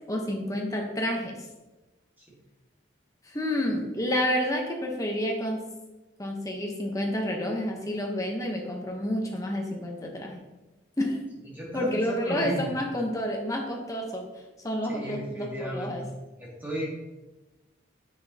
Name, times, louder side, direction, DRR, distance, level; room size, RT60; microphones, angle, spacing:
voice 1, 0.1-1.4 3.3-5.6 6.2-10.4 11.0-11.2 11.7-14.3 14.6-16.0, left 1 dB, 15° left, 1 dB, 0.9 m, -29 dB
voice 2, 11.5-12.7 14.8-15.9 16.4-17.2, right 1 dB, 10° right, -4 dB, 1.5 m, -35 dB
7.5 x 5.9 x 2.8 m, 1.1 s
head